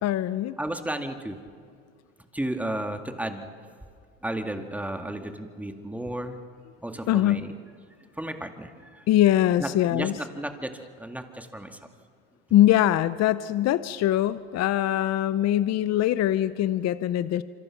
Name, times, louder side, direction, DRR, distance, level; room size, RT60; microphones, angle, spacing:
voice 1, 0.0-0.6 7.1-7.5 9.1-10.1 12.5-17.4, left 13 dB, 50° left, 15 dB, 0.8 m, -22 dB
voice 2, 0.6-1.4 2.3-3.5 4.2-6.4 6.8-7.5 8.2-9.0 9.6-11.8, right 1 dB, 5° right, 6 dB, 2.0 m, -33 dB
26.5 x 25.5 x 5.9 m, 2.2 s
supercardioid pair, 90°, 34 cm